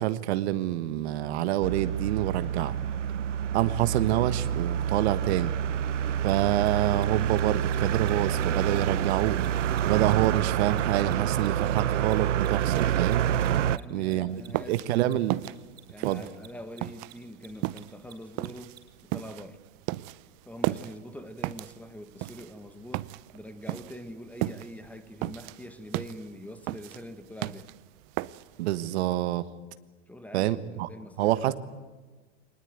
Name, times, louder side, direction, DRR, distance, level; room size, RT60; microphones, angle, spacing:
voice 1, 0.0-2.7 3.5-5.5 6.2-9.4 9.8-13.2 13.9-14.4 14.7-15.4 16.0-16.2 28.6-29.5 30.3-30.9 31.2-31.5, right 14 dB, 60° right, 13 dB, 1.5 m, -27 dB
sound 1, 1.6-13.8, right 9 dB, 90° right, 0.8 m, -27 dB
Mechanisms, 6.2-6.3 6.6-6.7 6.9-7.1 7.3-7.4 7.7-8.1 8.3-8.4 8.7-11.5 11.7-18.8, right 12 dB, 25° right, 3.9 m, -52 dB
voice 2, 13.7-15.3 15.9-18.8 19.0-19.6 20.4-27.7 30.1-31.5, equal, 5° left, 10 dB, 1.6 m, -44 dB
sound 2, 14.3-28.7, right 19 dB, 45° right, 0.7 m, -35 dB
24.5 x 19.5 x 9.4 m, 1.3 s
hypercardioid pair, 120°, 36 cm